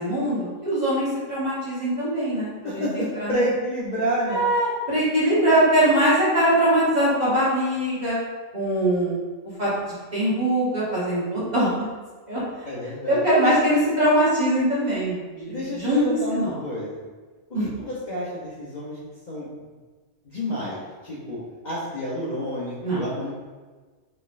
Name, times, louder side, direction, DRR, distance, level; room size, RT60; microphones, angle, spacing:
voice 1, 0.0-3.5 4.3-8.2 8.5-9.2 9.6-9.7 10.1-11.7 12.3-12.4 13.1-16.6 17.5-17.7 22.8-23.0, right 1 dB, 35° right, -9 dB, 1.1 m, -22 dB
voice 2, 2.6-4.4 12.6-13.8 15.5-17.0 17.5-19.0 19.3-19.5 20.2-21.4 21.6-23.3, equal, 40° left, -9 dB, 0.7 m, -29 dB
4.0 x 3.0 x 2.4 m, 1.4 s
omnidirectional pair, 1.3 m